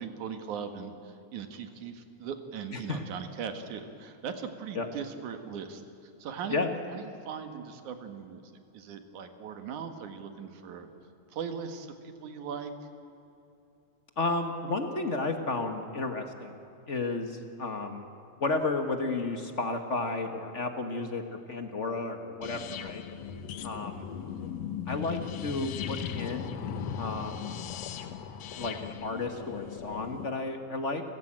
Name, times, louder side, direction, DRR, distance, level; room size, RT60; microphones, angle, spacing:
voice 1, 0.0-8.4 8.7-10.9 11.3-12.7 24.2-24.4, right 7 dB, 90° right, 7 dB, 3.1 m, -39 dB
voice 2, 14.2-16.6 16.9-18.0 18.4-23.0 23.6-24.0 24.9-26.6 27.0-27.5 28.6-31.0, left 3 dB, 40° left, 6 dB, 1.0 m, -32 dB
sound 1, 22.4-30.3, left 8 dB, 65° left, 2.0 m, -38 dB
30.0 x 15.0 x 8.8 m, 2.8 s
omnidirectional pair, 3.4 m